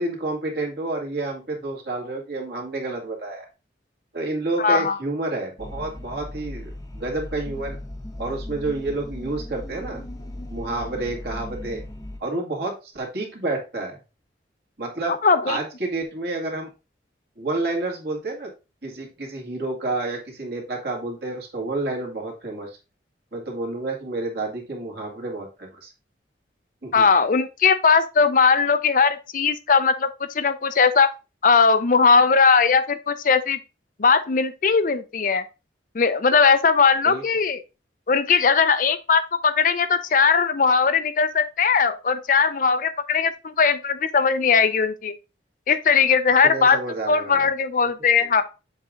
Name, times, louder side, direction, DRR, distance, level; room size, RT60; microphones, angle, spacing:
voice 1, 0.0-3.5 4.1-7.8 8.2-10.0 10.5-11.8 12.2-14.0 14.8-15.2 15.5-16.7 17.4-18.5 18.8-22.8 23.3-25.9 26.8-27.1 37.0-37.2 46.4-47.5, right 2 dB, 60° right, 2.2 m, -29 dB
voice 2, 4.6-5.0 15.2-15.6 26.9-30.1 30.3-31.1 31.4-33.6 34.0-35.4 35.9-37.6 38.1-45.1 45.7-46.8 47.1-48.4, left 5 dB, 45° left, 0.5 m, -19 dB
sound 1, 5.6-12.2, left 1 dB, 20° left, 0.8 m, -37 dB
7.3 x 3.7 x 3.7 m
head